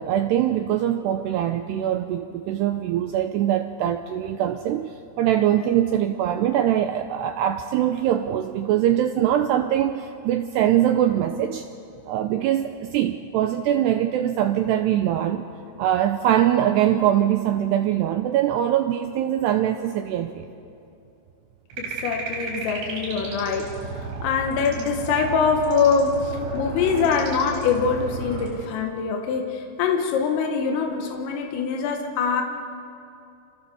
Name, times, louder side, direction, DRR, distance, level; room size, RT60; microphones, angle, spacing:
voice 1, 0.0-11.7 12.1-15.4 15.8-20.5, right 11 dB, 90° right, 7 dB, 2.4 m, -22 dB
sound 1, 21.7-28.5, right 3 dB, 70° right, 7.2 m, -33 dB
voice 2, 21.8-23.7 24.2-32.4, left 5 dB, 80° left, 3 dB, 4.3 m, -24 dB
29.5 x 26.5 x 7.1 m, 2.6 s
omnidirectional pair, 5.8 m